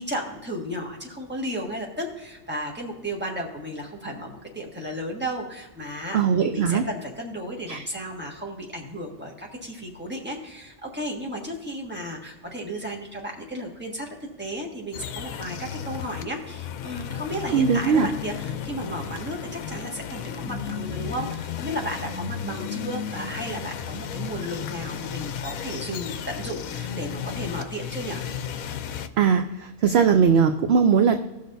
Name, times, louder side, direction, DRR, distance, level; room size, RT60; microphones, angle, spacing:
voice 1, 0.0-28.2, equal, 10° right, -1 dB, 1.5 m, -34 dB
voice 2, 6.1-6.8 7.7-7.8 17.5-18.1 29.2-31.2, right 6 dB, 60° right, 7 dB, 0.7 m, -20 dB
sound 1, 14.9-29.1, left 8 dB, 80° left, 1.1 m, -34 dB
17.5 x 6.4 x 2.6 m, 1.0 s
omnidirectional pair, 1.5 m